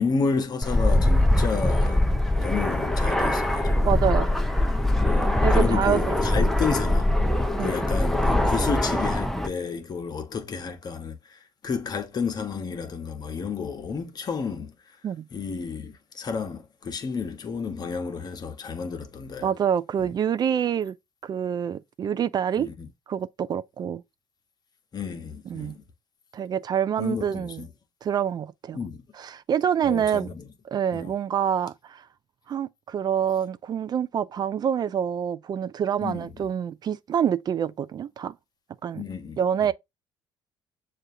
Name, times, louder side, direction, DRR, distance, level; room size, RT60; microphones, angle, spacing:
voice 1, 0.0-2.0 2.4-4.0 5.0-7.1 7.6-15.0 15.3-19.5 20.0-20.1 22.6-22.9 24.9-25.8 27.0-27.7 28.7-29.0 29.8-30.5 30.9-31.1 36.0-36.5 38.9-39.7, left 5 dB, 45° left, 1.0 m, -31 dB
Fixed-wing aircraft airplane, 0.6-9.5, left 1 dB, 5° left, 0.7 m, -22 dB
voice 2, 3.8-4.3 5.4-6.4 7.6-7.7 15.0-15.2 19.4-20.9 21.2-22.7 23.1-24.0 25.5-25.7 26.3-27.6 28.0-28.8 29.2-30.3 30.7-32.0 32.5-38.3 38.8-39.0 39.4-39.7, right 8 dB, 45° right, 0.3 m, -26 dB
6.6 x 2.5 x 2.6 m
supercardioid pair, 70°, 10 cm